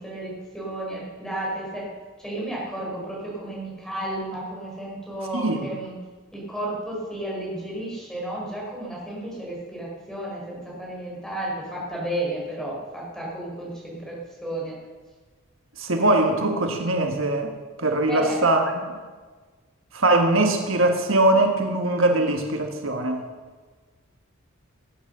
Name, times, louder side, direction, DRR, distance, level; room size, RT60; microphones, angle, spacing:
voice 1, 0.0-1.9 2.2-5.9 6.3-14.8 18.1-18.4, right 1 dB, 5° left, -4 dB, 4.5 m, -32 dB
voice 2, 15.8-17.5 17.8-18.6 19.9-23.2, right 2 dB, 70° right, 4 dB, 1.4 m, -21 dB
17.5 x 9.4 x 6.6 m, 1.4 s
head